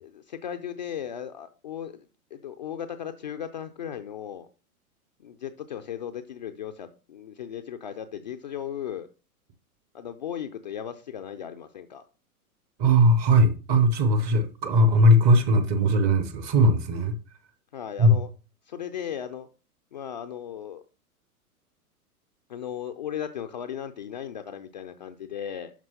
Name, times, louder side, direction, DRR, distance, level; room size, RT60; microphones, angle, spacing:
voice 1, 0.0-2.0 2.3-4.5 5.2-9.1 9.9-12.0 17.7-18.3 18.7-19.5 19.9-20.8 22.5-25.7, left 9 dB, 35° left, 0.4 m, -36 dB
voice 2, 12.8-17.2 18.0-18.2, equal, 20° right, 0.6 m, -19 dB
12.0 x 4.4 x 2.8 m
figure-of-eight pair, 105°, 45 cm